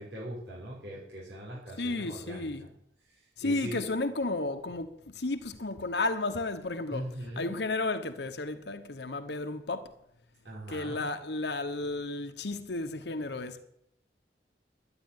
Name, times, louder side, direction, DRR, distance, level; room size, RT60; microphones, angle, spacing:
voice 1, 0.0-2.7 3.4-3.8 6.9-7.6 10.4-11.0, right 1 dB, 75° right, 6.0 m, -40 dB
voice 2, 1.8-2.7 3.4-9.9 10.7-13.6, left 2 dB, 70° left, 1.0 m, -33 dB
11.5 x 9.9 x 9.3 m
head